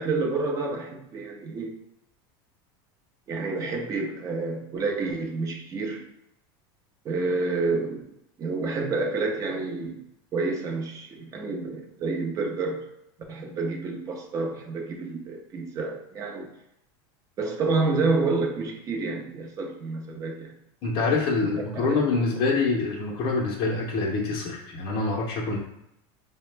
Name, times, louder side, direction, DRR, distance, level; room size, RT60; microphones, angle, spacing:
voice 1, 0.0-1.7 3.3-6.1 7.0-8.0 8.4-10.0 10.3-12.8 13.3-16.5 17.4-20.6 21.5-22.2, right 3 dB, 25° right, 1 dB, 0.6 m, -29 dB
voice 2, 20.8-25.6, left 3 dB, 40° left, -3 dB, 0.7 m, -25 dB
4.7 x 2.1 x 3.2 m, 0.81 s
supercardioid pair, 155°, 13 cm